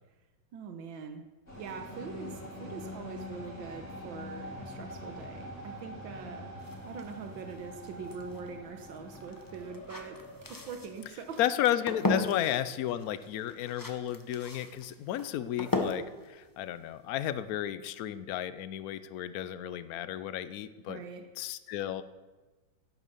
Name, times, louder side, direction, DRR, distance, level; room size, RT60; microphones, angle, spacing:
voice 1, 0.5-1.2 1.6-10.2 10.5-11.4 12.2-12.3 20.9-21.3, right 5 dB, 90° right, 6 dB, 1.7 m, -43 dB
sound 1, 1.5-11.1, left 1 dB, 40° left, 4.7 m, -44 dB
sound 2, 6.6-17.5, left 2 dB, 15° left, 0.7 m, -38 dB
voice 2, 11.4-21.0 21.4-22.0, left 11 dB, 65° left, 14 dB, 1.0 m, -33 dB
11.0 x 11.0 x 6.9 m, 1.2 s
omnidirectional pair, 2.0 m